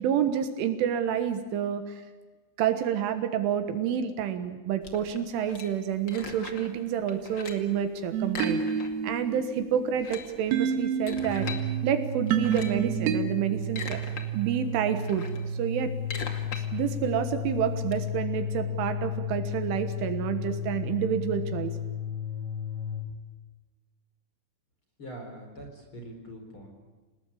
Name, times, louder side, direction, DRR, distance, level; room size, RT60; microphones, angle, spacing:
voice 1, 0.0-2.0 2.6-8.6 9.0-11.5 11.8-14.0 14.3-15.3 15.6-15.9 16.5-21.8, right 9 dB, 75° right, 9 dB, 3.6 m, -29 dB
sound 1, 4.8-6.8 7.1-7.7 8.3-9.2 9.4-9.5 9.8-11.6 12.3-12.9 13.4-14.2 14.6-17.9, left 4 dB, 50° left, 1.4 m, -40 dB
sound 2, 8.1-13.2, right 7 dB, 90° right, 4.4 m, -30 dB
sound 3, 11.2-23.1, left 2 dB, 50° right, 2.8 m, -33 dB
voice 2, 25.0-26.7, right 1 dB, 25° left, 3 dB, 4.4 m, -43 dB
28.5 x 19.0 x 8.5 m, 1.3 s
omnidirectional pair, 6.0 m